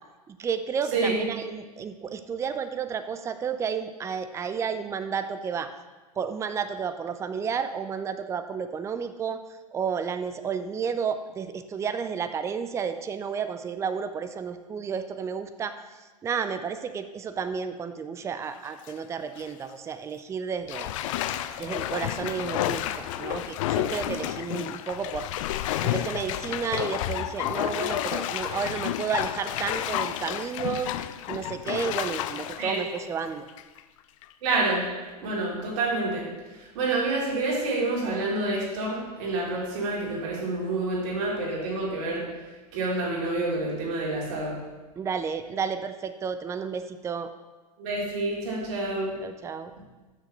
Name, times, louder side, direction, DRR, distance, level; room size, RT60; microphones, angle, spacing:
voice 1, 0.3-5.7 6.2-9.4 9.7-15.7 16.2-20.9 21.6-25.3 25.8-30.9 31.3-33.5 45.0-47.3 49.2-49.7, right 6 dB, 15° right, 10 dB, 0.5 m, -32 dB
voice 2, 0.9-1.2 32.6-32.8 34.4-34.8 35.2-36.2 36.7-42.3 42.7-44.5 47.8-49.1, right 2 dB, 55° right, -4 dB, 3.3 m, -28 dB
Bathtub (filling or washing), 18.5-18.9 19.4-19.5 20.7-33.8 34.2-34.3, left 12 dB, 55° left, 0.5 m, -31 dB
13.5 x 6.5 x 3.2 m, 1.2 s
figure-of-eight pair, 95°, 20 cm